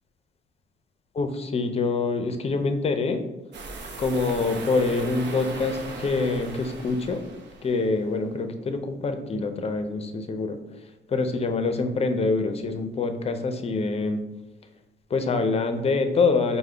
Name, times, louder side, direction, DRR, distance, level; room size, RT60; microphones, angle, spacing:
voice 1, 1.1-3.2 4.0-7.2 7.6-10.6 11.1-14.2 15.1-16.6, left 3 dB, 30° left, 7 dB, 0.5 m, -25 dB
sound 1, 3.5-8.0, right 3 dB, 65° right, 0.7 m, -38 dB
4.7 x 2.1 x 3.3 m, 1.1 s
cardioid pair, 90°, 20 cm